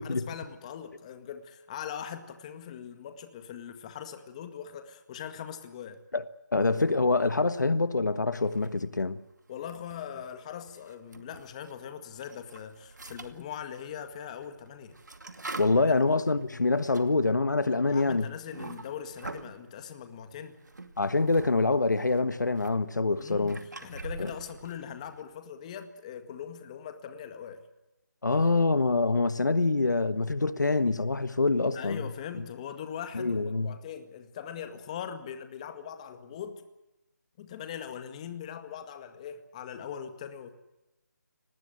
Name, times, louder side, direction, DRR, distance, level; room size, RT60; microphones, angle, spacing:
voice 1, 0.0-6.0 9.5-15.0 15.9-16.0 17.9-20.6 23.2-27.6 31.7-36.6 37.4-40.5, left 8 dB, 20° left, 1.9 m, -41 dB
voice 2, 6.5-9.2 15.6-18.3 21.0-23.6 24.2-24.3 28.2-32.0 33.1-33.8, left 3 dB, 80° left, 1.5 m, -25 dB
sound 1, 8.4-9.1 9.5-11.8 12.1-19.6 20.3-21.5 21.8-25.2, right 3 dB, 80° right, 2.4 m, -45 dB
24.0 x 20.0 x 7.8 m
figure-of-eight pair, 165°, 10 cm